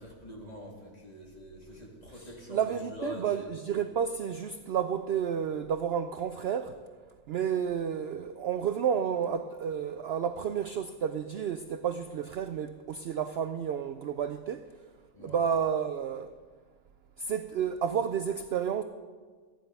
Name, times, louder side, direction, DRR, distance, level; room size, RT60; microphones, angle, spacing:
voice 1, 0.0-2.6 2.9-3.5 15.1-15.4, left 1 dB, 30° left, 2.7 m, -43 dB
voice 2, 2.1-6.7 7.3-14.6 15.2-16.3 17.2-18.8, right 8 dB, 65° right, 0.7 m, -31 dB
14.0 x 10.5 x 5.4 m
omnidirectional pair, 1.4 m